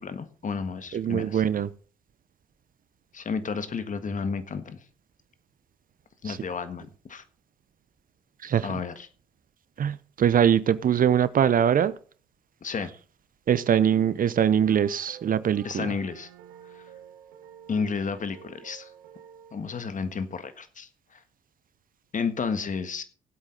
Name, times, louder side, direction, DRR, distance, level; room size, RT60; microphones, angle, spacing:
voice 1, 0.0-1.4 3.1-4.8 6.2-7.2 8.6-9.1 12.6-12.9 15.6-16.3 16.7-16.8 17.7-18.9 19.5-21.2 22.1-23.0, left 5 dB, 40° left, 1.6 m, -32 dB
voice 2, 0.9-1.7 6.2-6.4 8.4-8.8 9.8-12.0 13.5-15.9, right 9 dB, 45° right, 0.7 m, -23 dB
sound 1, 14.6-19.9, right 9 dB, 75° right, 1.4 m, -49 dB
17.5 x 8.1 x 4.0 m
hypercardioid pair, 50°, 19 cm